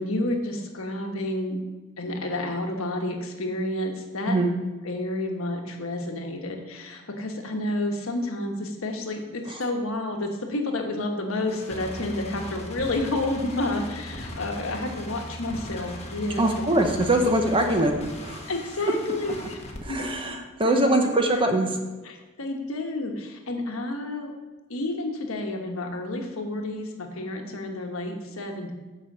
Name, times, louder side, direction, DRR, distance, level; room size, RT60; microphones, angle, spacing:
voice 1, 0.0-1.6 2.0-4.5 4.8-16.4 16.8-17.1 18.5-19.3 19.9-20.4 20.6-21.0 22.0-24.3 24.7-28.7, left 2 dB, 70° left, 3 dB, 1.3 m, -30 dB
sound 1, 11.5-19.8, left 1 dB, 30° left, 1.2 m, -38 dB
voice 2, 16.4-17.9 18.2-18.4 19.8-21.7, right 1 dB, 25° right, 4 dB, 0.9 m, -22 dB
8.0 x 5.2 x 7.2 m, 1.3 s
head